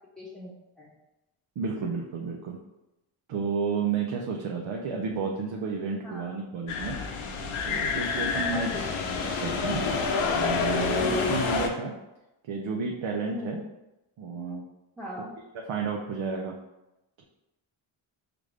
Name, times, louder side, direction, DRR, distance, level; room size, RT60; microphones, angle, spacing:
voice 1, 0.2-0.9 6.0-6.4 8.5-8.9 13.3-13.6 15.0-15.3, left 1 dB, ahead, -7 dB, 1.1 m, -40 dB
voice 2, 1.6-2.6 3.3-7.0 7.6-8.7 9.2-9.8 10.3-11.9 12.5-13.6 14.2-14.7 15.7-16.5, right 5 dB, 65° right, 0 dB, 0.7 m, -31 dB
sound 1, 6.7-11.7, left 4 dB, 85° left, 0.7 m, -28 dB
4.8 x 2.6 x 3.2 m, 0.96 s
cardioid pair, 55°, 49 cm